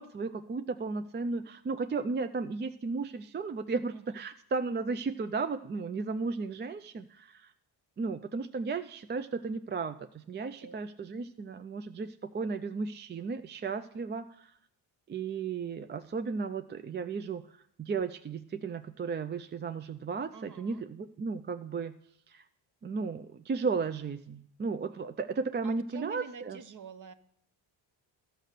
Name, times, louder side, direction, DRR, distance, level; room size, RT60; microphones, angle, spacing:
voice 1, 0.0-7.5 8.0-14.5 15.1-22.0 22.3-22.4 22.8-26.6, right 4 dB, 25° right, 10 dB, 0.4 m, -35 dB
voice 2, 10.4-10.8 20.3-20.8 25.6-27.1, right 7 dB, 40° right, 14 dB, 0.8 m, -47 dB
12.5 x 6.6 x 6.6 m, 0.68 s
cardioid pair, 90°, 47 cm